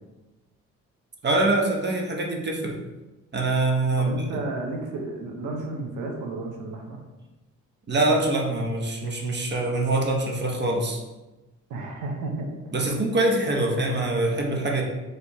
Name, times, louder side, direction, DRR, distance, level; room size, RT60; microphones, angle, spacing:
voice 1, 1.2-2.8 3.3-4.4 7.9-11.0 12.7-14.8, right 2 dB, 35° right, 1 dB, 0.8 m, -24 dB
voice 2, 4.0-7.0 11.7-12.5, right 2 dB, 85° right, 1 dB, 0.9 m, -32 dB
4.4 x 3.3 x 2.9 m, 1.1 s
cardioid pair, 90°, 30 cm